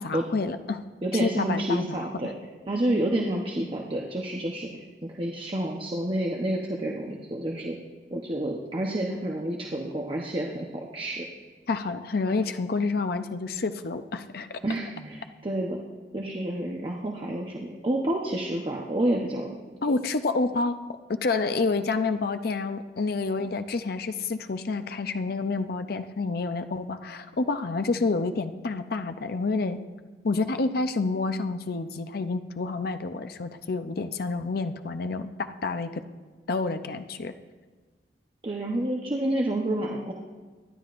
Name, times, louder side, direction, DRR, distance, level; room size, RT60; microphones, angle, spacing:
voice 1, 0.0-0.8 1.2-2.1 11.7-14.6 19.8-20.8 21.1-29.8 30.2-36.0 36.5-37.3, left 3 dB, 55° left, 9 dB, 0.6 m, -28 dB
voice 2, 1.0-2.3 2.7-7.8 8.1-11.2 14.6-15.8 16.1-19.5 38.4-40.1, right 1 dB, 30° right, -1 dB, 0.9 m, -29 dB
24.5 x 11.0 x 2.5 m, 1.4 s
head